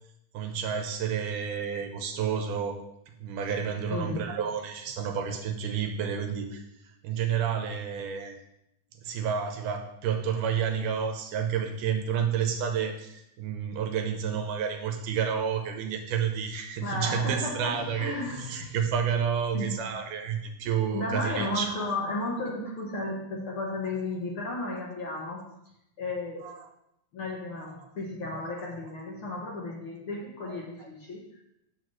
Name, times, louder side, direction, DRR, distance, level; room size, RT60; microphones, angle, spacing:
voice 1, 0.3-2.8 3.2-6.6 7.0-8.4 9.0-18.1 18.5-21.7 26.4-26.5 30.5-30.9, right 7 dB, 85° right, 4 dB, 2.4 m, -30 dB
voice 2, 3.9-4.2 16.8-18.8 19.5-19.7 20.9-25.4 26.0-26.5 27.1-31.4, left 2 dB, 55° left, -3 dB, 1.6 m, -34 dB
7.6 x 7.0 x 3.2 m, 0.80 s
omnidirectional pair, 3.6 m